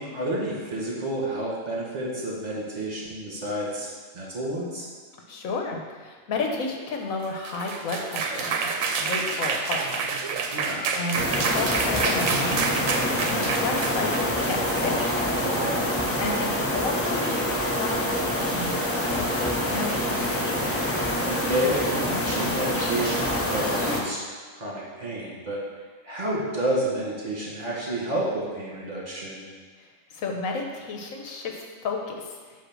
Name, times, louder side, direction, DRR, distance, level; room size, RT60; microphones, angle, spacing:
voice 1, 0.0-3.9 4.1-4.9 10.5-10.9 15.4-15.9 21.2-24.2 24.5-25.6 26.0-29.5, right 1 dB, 30° right, -5 dB, 1.8 m, -30 dB
voice 2, 5.3-10.0 10.9-15.0 16.2-18.8 19.1-20.7 30.1-32.6, left 3 dB, 90° left, 2 dB, 1.2 m, -32 dB
sound 1, 7.2-15.5, right 5 dB, 80° right, 1.0 m, -28 dB
sound 2, 11.1-24.0, left 1 dB, 15° left, 0.6 m, -26 dB
8.0 x 2.9 x 6.1 m, 1.5 s
omnidirectional pair, 1.4 m